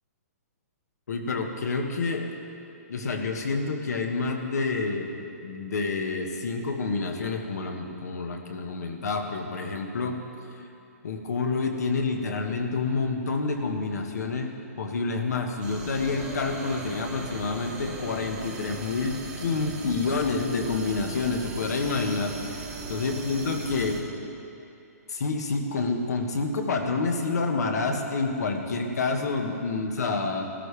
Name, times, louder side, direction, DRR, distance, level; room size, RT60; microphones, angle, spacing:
voice 1, 1.1-2.3 2.9-5.1 5.4-10.2 11.0-14.5 14.8-22.6 22.9-24.0 25.1-30.4, left 4 dB, 70° left, 3 dB, 1.5 m, -28 dB
sound 1, 15.6-24.0, right 3 dB, 10° right, 1.1 m, -38 dB
16.0 x 13.5 x 3.4 m, 2.7 s
hypercardioid pair, 165°, 9 cm